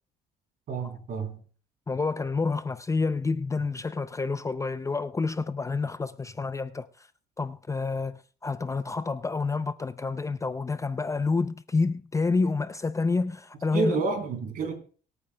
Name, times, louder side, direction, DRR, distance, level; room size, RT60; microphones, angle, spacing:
voice 1, 0.7-1.4 13.7-14.7, right 4 dB, 55° right, 3.4 m, -29 dB
voice 2, 1.9-7.1 7.4-14.0, left 4 dB, 20° left, 0.5 m, -28 dB
24.0 x 8.8 x 2.2 m
cardioid pair, 110°, 17 cm